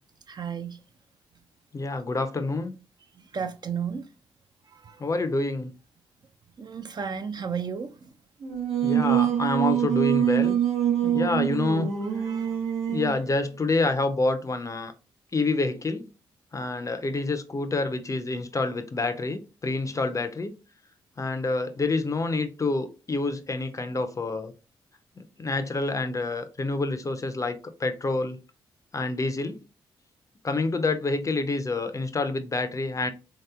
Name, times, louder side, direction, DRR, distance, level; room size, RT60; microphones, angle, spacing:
voice 1, 0.3-0.8 3.3-4.1 4.7-5.0 6.6-8.1 11.0-11.2 12.2-12.6, right 6 dB, 40° right, 0.4 m, -33 dB
voice 2, 1.7-2.7 5.0-5.7 8.8-10.6 11.1-11.9 12.9-14.9 15.3-16.0 16.5-20.5 21.2-24.5 25.4-28.4 28.9-29.6 30.4-33.1, left 3 dB, 30° left, 0.5 m, -27 dB
Singing, 8.4-13.3, right 10 dB, 70° right, 0.7 m, -25 dB
3.1 x 2.8 x 2.3 m
hypercardioid pair, 45°, 11 cm